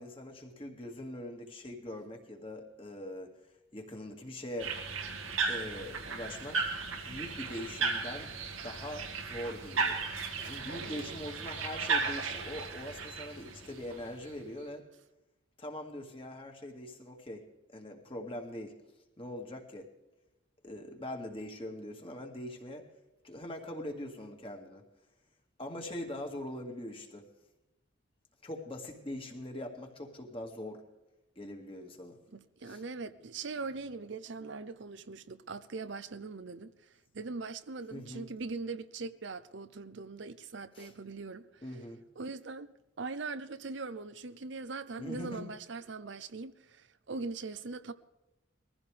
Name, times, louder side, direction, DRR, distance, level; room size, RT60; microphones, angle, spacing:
voice 1, 0.0-3.3 3.7-4.8 5.5-6.6 6.9-10.0 10.4-14.8 15.6-18.7 19.2-19.9 20.6-22.9 23.2-24.8 25.6-27.3 28.4-30.8 31.4-32.2 32.6-32.8 37.9-38.3 40.7-40.9 41.6-42.0 45.0-45.6, left 1 dB, 25° left, 2.1 m, -42 dB
sound 1, 4.6-14.3, right 4 dB, 90° right, 2.1 m, -35 dB
voice 2, 10.8-11.2 32.3-36.7 37.1-41.6 42.2-42.7 43.0-47.9, right 4 dB, 65° right, 0.7 m, -41 dB
21.5 x 15.0 x 3.4 m
head